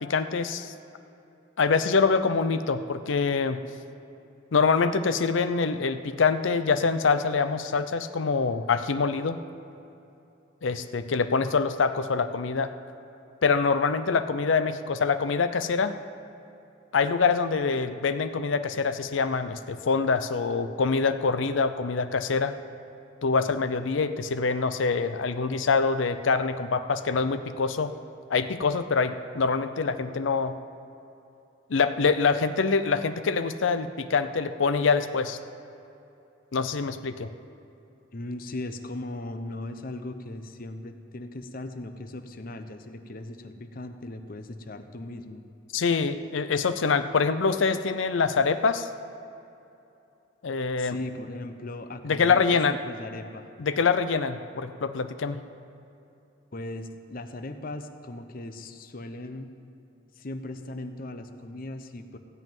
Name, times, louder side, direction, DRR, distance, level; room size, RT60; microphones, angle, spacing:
voice 1, 0.0-0.7 1.6-3.6 4.5-9.4 10.6-12.7 13.4-16.0 16.9-22.6 23.2-27.9 28.3-30.5 31.7-35.4 36.5-37.3 45.7-48.9 50.4-51.0 52.0-52.8 53.6-55.4, left 4 dB, 75° left, 10 dB, 0.6 m, -25 dB
voice 2, 38.1-45.4 50.8-52.4 52.8-53.5 56.5-59.5 60.2-62.2, left 2 dB, 50° left, 8 dB, 0.8 m, -38 dB
16.0 x 5.5 x 9.2 m, 2.8 s
head